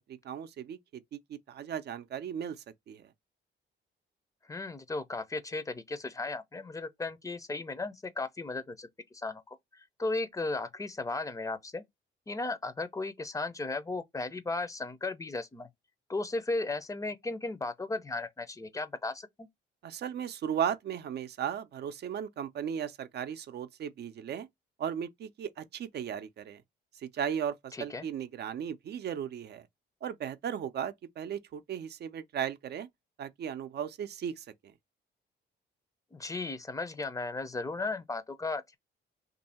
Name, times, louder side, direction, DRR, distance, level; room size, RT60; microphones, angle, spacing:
voice 1, 0.1-2.6 2.9-3.1 19.8-24.5 24.8-26.6 27.0-29.7 30.0-32.9 33.2-34.7, right 8 dB, 55° right, 0.5 m, -36 dB
voice 2, 4.5-11.8 12.3-15.7 16.1-19.5 27.7-28.1 36.1-38.8, left 3 dB, 15° left, 0.6 m, -36 dB
2.7 x 2.6 x 4.2 m
cardioid pair, 90°, 20 cm